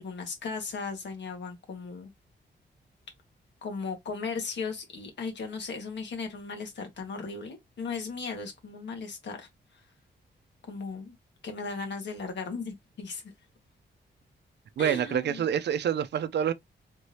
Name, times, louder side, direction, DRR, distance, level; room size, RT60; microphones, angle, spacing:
voice 1, 0.0-2.1 3.6-9.5 10.6-11.1 11.4-13.2 14.8-15.4, left 4 dB, 70° left, 1.6 m, -36 dB
voice 2, 14.8-16.5, right 9 dB, 65° right, 0.5 m, -27 dB
3.5 x 2.8 x 3.2 m
wide cardioid pair, 125°, 19 cm